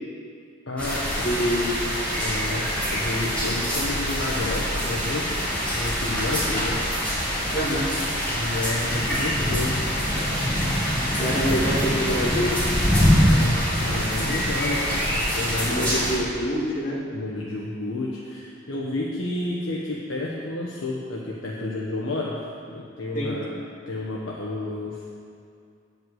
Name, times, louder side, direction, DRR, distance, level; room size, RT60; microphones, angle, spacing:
voice 1, 0.7-1.4 2.2-5.4 5.6-6.8 8.3-9.8 12.9-16.0 17.1-22.3 22.7-23.5 23.9-25.0, left 2 dB, 90° left, -5 dB, 1.1 m, -31 dB
sound 1, 0.8-16.1, equal, 5° left, 2.9 m, -24 dB
voice 2, 1.2-1.7 7.5-7.9 11.2-12.6 15.6-17.0 23.1-23.4, equal, 40° left, -7 dB, 2.2 m, -26 dB
9.1 x 5.5 x 7.8 m, 2.4 s
head